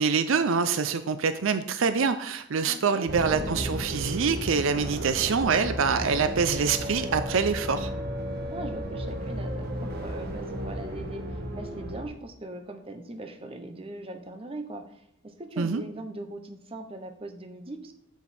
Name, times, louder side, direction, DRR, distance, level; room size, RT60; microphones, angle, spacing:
voice 1, 0.0-7.9 15.6-15.8, right 5 dB, 65° right, 10 dB, 0.5 m, -25 dB
voice 2, 2.6-3.2 8.5-17.9, right 2 dB, 25° right, 5 dB, 0.8 m, -40 dB
sound 1, 3.1-12.0, equal, 45° right, 1.4 m, -33 dB
8.1 x 7.0 x 4.3 m, 0.75 s
head